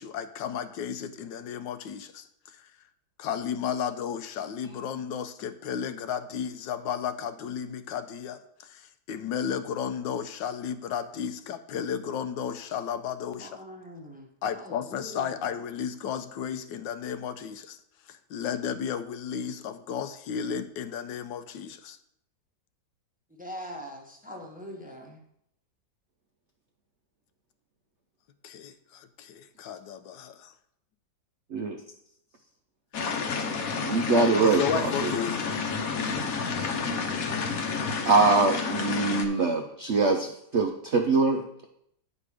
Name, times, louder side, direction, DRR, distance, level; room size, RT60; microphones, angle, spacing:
voice 1, 0.0-2.7 3.2-13.6 14.4-17.8 18.0-22.0 28.4-30.5 34.4-35.4, left 8 dB, 85° left, 10 dB, 1.3 m, -33 dB
voice 2, 13.4-14.3 14.6-15.3 23.4-25.2, equal, 5° right, 0 dB, 0.8 m, -42 dB
sound 1, 32.9-39.2, left 5 dB, 55° left, 1.2 m, -30 dB
voice 3, 33.8-35.1 38.0-41.7, right 3 dB, 65° right, 3 dB, 0.7 m, -23 dB
9.6 x 5.1 x 4.8 m, 0.74 s
omnidirectional pair, 2.0 m